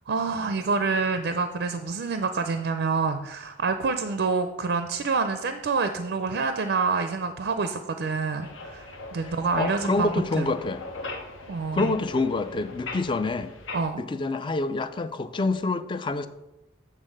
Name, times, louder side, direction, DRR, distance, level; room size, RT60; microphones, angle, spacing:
voice 1, 0.1-10.5 11.5-11.9 13.7-14.0, right 4 dB, 55° right, 7 dB, 0.4 m, -27 dB
sound 1, 8.4-13.9, left 2 dB, 80° left, 1.0 m, -39 dB
voice 2, 9.5-10.9 11.7-13.5 14.0-16.3, left 3 dB, 25° left, 12 dB, 0.3 m, -27 dB
8.2 x 3.7 x 6.5 m, 0.97 s
head